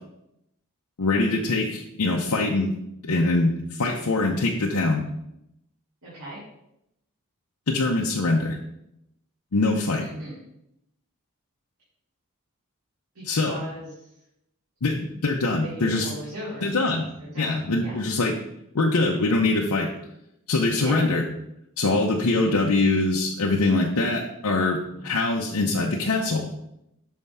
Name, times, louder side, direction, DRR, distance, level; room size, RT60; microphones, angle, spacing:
voice 1, 1.0-2.7 3.0-5.1 7.7-8.6 9.5-10.1 13.2-13.6 14.8-16.1 16.6-17.1 17.4-18.3 18.7-19.9 20.5-21.2 21.8-26.5, left 2 dB, 75° left, -1 dB, 0.7 m, -23 dB
voice 2, 6.0-6.4 10.0-10.4 13.1-14.1 15.6-16.9 17.2-18.0 20.8-21.0 22.3-22.5 25.0-25.2, right 1 dB, 75° right, -9 dB, 2.4 m, -38 dB
6.4 x 3.5 x 5.4 m, 0.81 s
head